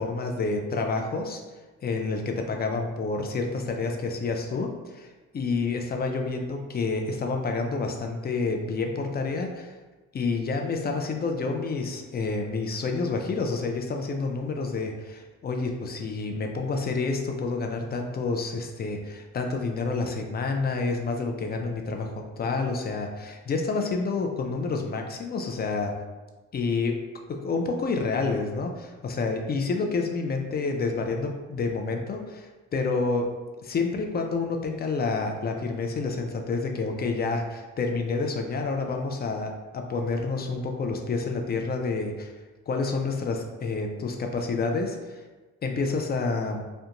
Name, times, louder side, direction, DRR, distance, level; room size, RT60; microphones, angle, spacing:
voice 1, 0.0-1.4 1.8-9.7 10.1-26.0 26.5-27.0 27.3-33.3 33.6-42.3 42.7-45.2 45.6-46.6, left 4 dB, 35° left, 3 dB, 0.4 m, -29 dB
2.5 x 2.2 x 2.8 m, 1.2 s
cardioid pair, 90°, 30 cm